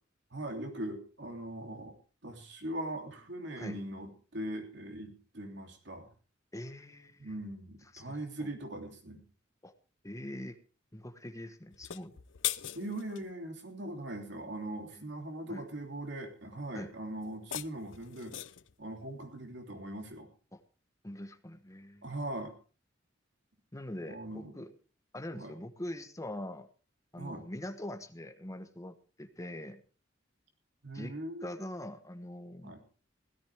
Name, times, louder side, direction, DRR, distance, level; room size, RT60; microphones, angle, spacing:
voice 1, 0.3-1.9 2.2-6.1 7.2-9.2 12.7-18.4 18.8-20.3 22.0-22.5 24.1-24.6 25.4-25.5 27.2-27.5 30.8-31.5 32.6-32.8, right 1 dB, 65° right, 3 dB, 3.1 m, -40 dB
voice 2, 6.5-7.2 7.9-8.5 9.6-9.7 10.0-10.6 10.9-12.2 15.5-15.6 16.7-16.9 20.5-20.6 21.0-22.0 23.7-24.7 25.1-26.7 27.1-29.8 30.9-31.1 31.4-32.8, left 1 dB, 15° left, 9 dB, 1.2 m, -43 dB
sound 1, 11.7-13.3 17.2-18.7, left 13 dB, 75° left, 0.6 m, -39 dB
16.5 x 13.5 x 3.5 m, 0.37 s
head